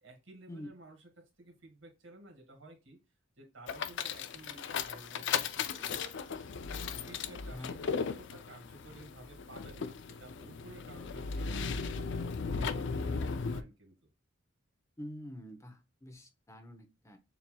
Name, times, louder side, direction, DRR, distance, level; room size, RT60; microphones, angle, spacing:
voice 1, 0.0-1.1 1.4-3.0 3.4-6.7 7.1-12.2 12.5-14.0, right 2 dB, 75° right, 3 dB, 2.0 m, -54 dB
sound 1, 3.7-13.6, left 5 dB, 65° left, 0.5 m, -36 dB
voice 2, 15.0-17.2, left 1 dB, 15° left, 5 dB, 0.8 m, -46 dB
7.0 x 2.8 x 2.2 m, 0.27 s
head